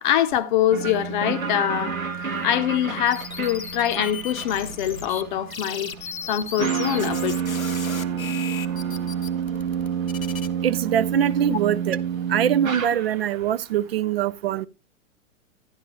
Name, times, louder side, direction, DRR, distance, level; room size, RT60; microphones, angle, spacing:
voice 1, 0.0-7.6 11.5-11.6, left 11 dB, 35° left, 0.7 m, -24 dB
sound 1, 0.7-13.5, right 7 dB, 85° right, 1.1 m, -29 dB
sound 2, 3.1-5.2 5.5-10.5, left 6 dB, 85° left, 0.9 m, -36 dB
voice 2, 10.6-12.0 12.3-14.7, right 10 dB, 50° right, 0.5 m, -23 dB
11.5 x 10.0 x 2.9 m
figure-of-eight pair, 105°, 40 cm